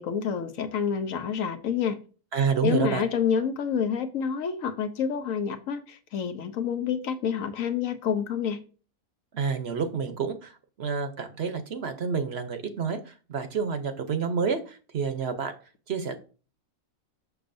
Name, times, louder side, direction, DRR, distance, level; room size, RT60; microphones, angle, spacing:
voice 1, 0.0-2.0 2.6-8.6, left 7 dB, 70° left, 1.1 m, -28 dB
voice 2, 2.3-3.0 9.3-15.5 15.9-16.2, right 6 dB, 55° right, 0.9 m, -29 dB
6.9 x 6.4 x 2.6 m
omnidirectional pair, 1.5 m